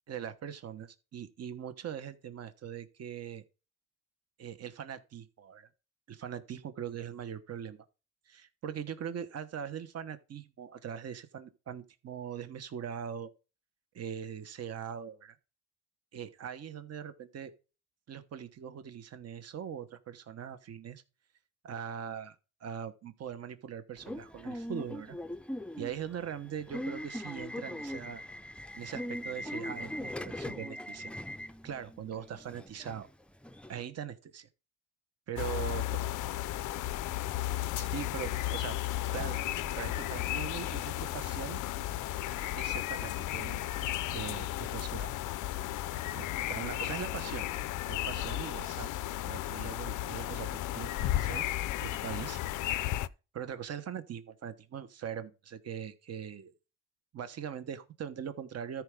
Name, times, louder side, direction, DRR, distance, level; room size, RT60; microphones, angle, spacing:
voice 1, 0.1-3.4 4.4-5.7 6.1-7.8 8.3-13.3 13.9-15.4 16.1-17.5 18.1-21.0 21.6-22.3 22.6-25.2 25.8-28.2 28.7-31.1 31.6-33.1 33.7-34.5 35.3-35.8 37.7-38.8 39.1-39.4 39.8-41.6 42.6-43.7 44.1-45.2 46.1-47.5 47.9-48.9 49.3-52.4 52.8-53.0 53.3-56.5 57.1-58.8, right 8 dB, 55° right, 1.2 m, -41 dB
Subway metro underground / Alarm, 24.0-33.8, left 1 dB, 5° left, 0.5 m, -41 dB
sound 1, 35.4-53.1, left 14 dB, 80° left, 0.6 m, -34 dB
Acoustic guitar / Strum, 39.2-43.9, right 7 dB, 30° right, 0.7 m, -56 dB
13.5 x 4.8 x 3.8 m
cardioid pair, 90°, 30 cm